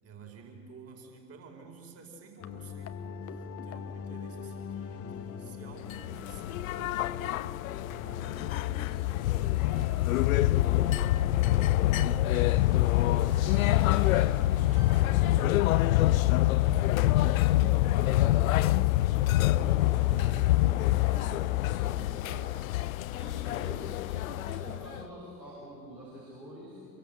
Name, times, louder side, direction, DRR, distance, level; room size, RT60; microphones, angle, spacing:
voice 1, 0.0-6.9, right 4 dB, 30° right, 2 dB, 4.5 m, -51 dB
sound 1, 2.4-11.9, left 8 dB, 30° left, 1.4 m, -40 dB
sound 2, 5.8-25.0, left 15 dB, 55° left, 0.6 m, -26 dB
voice 2, 7.8-12.5 13.2-15.9 16.4-18.3 19.1-22.5 23.1-27.0, right 1 dB, 90° right, -7 dB, 6.5 m, -47 dB
sound 3, 12.3-17.8, right 4 dB, 65° right, 3.3 m, -54 dB
27.5 x 23.5 x 6.8 m, 2.9 s
figure-of-eight pair, 80°, 50 cm